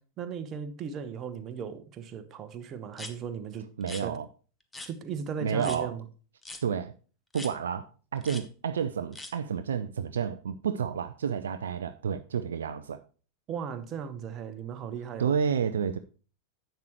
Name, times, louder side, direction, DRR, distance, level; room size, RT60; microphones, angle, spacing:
voice 1, 0.2-3.6 4.0-4.2 4.9-6.0 13.5-15.3, right 7 dB, 30° right, 1.1 m, -37 dB
sound 1, 2.9-3.1 3.8-4.0 4.7-4.9 5.6-5.8 6.4-6.6 7.3-7.5 8.2-8.4 9.1-9.3, left 2 dB, 10° left, 1.1 m, -41 dB
voice 2, 3.8-4.3 5.4-5.9 6.6-6.9 7.3-13.0 15.2-16.0, right 7 dB, 65° right, 0.4 m, -30 dB
10.5 x 7.9 x 3.1 m
figure-of-eight pair, 90°, 0 cm